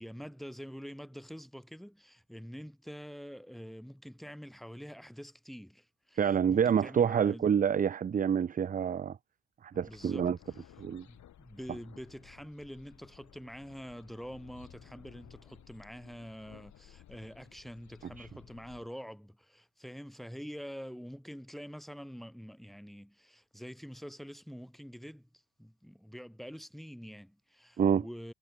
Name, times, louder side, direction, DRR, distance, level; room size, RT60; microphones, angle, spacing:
voice 1, 0.0-7.5 9.8-10.7 11.0-28.3, equal, ahead, 7.6 m, -46 dB
voice 2, 6.2-9.2 9.6-10.4 10.8-11.1 18.2-18.3 27.8-28.0, right 8 dB, 30° right, 0.5 m, -27 dB
Medium distant thunder evening birds, 9.7-18.9, left 11 dB, 70° left, 4.4 m, -57 dB
cardioid pair, 90°, 30 cm